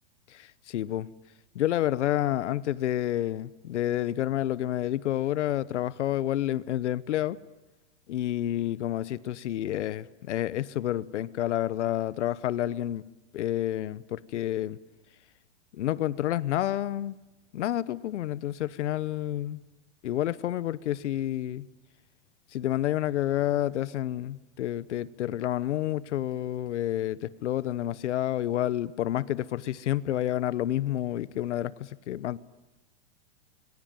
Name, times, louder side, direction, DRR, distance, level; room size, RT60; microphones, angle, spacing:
voice 1, 0.3-1.1 1.5-7.4 8.1-13.0 13.3-14.8 15.7-17.2 17.5-19.6 20.0-21.7 22.5-32.4, left 12 dB, 80° left, 1.2 m, -29 dB
27.5 x 23.5 x 9.3 m
supercardioid pair, 175°, 35 cm